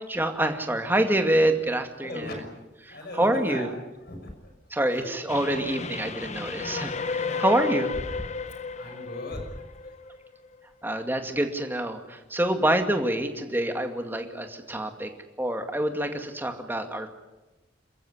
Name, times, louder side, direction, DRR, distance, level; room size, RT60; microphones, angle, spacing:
voice 1, 0.1-2.4 2.9-3.7 4.7-7.9 10.8-15.1 15.4-17.1, right 1 dB, 10° right, 5 dB, 2.3 m, -26 dB
voice 2, 2.0-3.7 4.1-4.5 4.9-5.1 6.2-6.7 7.0-7.6 8.6-9.9, left 1 dB, 60° left, 5 dB, 6.1 m, -40 dB
Train, 5.3-10.6, left 4 dB, 40° left, 0.9 m, -33 dB
28.0 x 15.0 x 9.7 m, 1.1 s
head